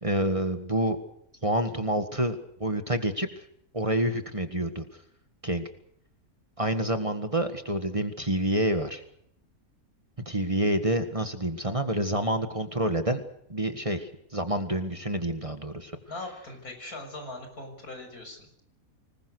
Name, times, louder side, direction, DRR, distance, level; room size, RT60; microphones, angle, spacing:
voice 1, 0.0-1.0 1.4-3.3 3.7-4.8 5.4-5.7 6.6-9.0 10.3-13.2 13.5-15.9, right 1 dB, 25° right, 8 dB, 1.8 m, -28 dB
voice 2, 16.1-18.6, left 2 dB, 85° left, 5 dB, 7.2 m, -40 dB
26.0 x 20.0 x 6.6 m, 0.70 s
omnidirectional pair, 1.5 m